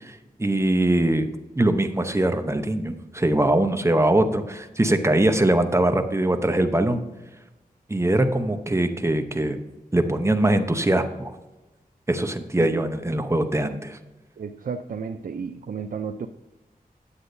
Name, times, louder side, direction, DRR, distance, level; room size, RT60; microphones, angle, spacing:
voice 1, 0.0-1.3 1.6-7.0 7.9-9.6 9.9-11.3 12.1-14.0, right 1 dB, 15° right, 7 dB, 0.7 m, -22 dB
voice 2, 14.4-16.3, right 6 dB, 65° right, 7 dB, 0.4 m, -32 dB
9.7 x 7.8 x 2.6 m, 1.1 s
wide cardioid pair, 85°, 16 cm